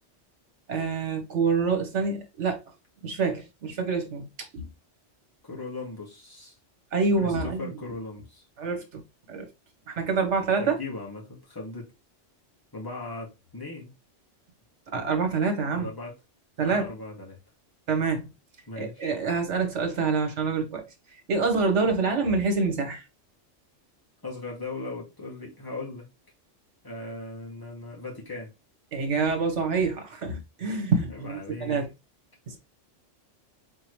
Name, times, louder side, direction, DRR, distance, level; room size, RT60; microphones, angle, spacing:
voice 1, 0.7-2.6 3.0-4.3 4.5-4.6 6.9-7.7 8.6-9.0 9.3-9.5 9.9-10.7 14.9-15.9 16.6-16.8 17.9-18.3 18.8-20.8 21.3-23.0 28.9-31.9 32.5-32.6, right 4 dB, 70° right, 1.6 m, -26 dB
voice 2, 5.4-6.6 7.1-8.4 10.6-11.9 12.7-13.9 15.7-16.1 16.6-17.4 18.7-19.1 24.2-26.1 26.8-28.5 31.1-31.9, left 2 dB, 20° left, 1.9 m, -38 dB
4.4 x 3.8 x 3.1 m
omnidirectional pair, 1.2 m